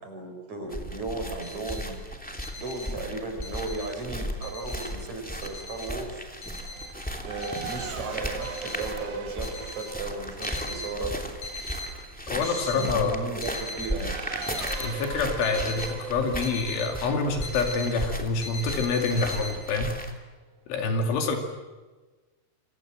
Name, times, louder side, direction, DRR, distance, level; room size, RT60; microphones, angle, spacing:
voice 1, 0.0-2.0 2.6-6.2 7.2-11.2 12.3-14.1, right 3 dB, 35° right, 4 dB, 5.7 m, -35 dB
sound 1, 0.7-20.1, equal, 5° left, 0.9 m, -36 dB
sound 2, 1.4-1.8 2.2-4.0 4.4-5.1 5.4-7.1 7.4-7.9 8.4-9.0 9.4-11.0 11.3-11.9 12.3-13.0 13.3-13.9 14.4-16.9 17.2-18.0 18.4-19.6, left 2 dB, 30° left, 6.4 m, -39 dB
Race car auto racing / Accelerating revving vroom, 5.0-19.1, right 6 dB, 60° right, 4.5 m, -41 dB
voice 2, 12.3-13.2 14.8-19.9 20.7-21.4, left 4 dB, 70° left, 3 dB, 4.8 m, -27 dB
28.5 x 25.0 x 7.7 m, 1.3 s
omnidirectional pair, 5.9 m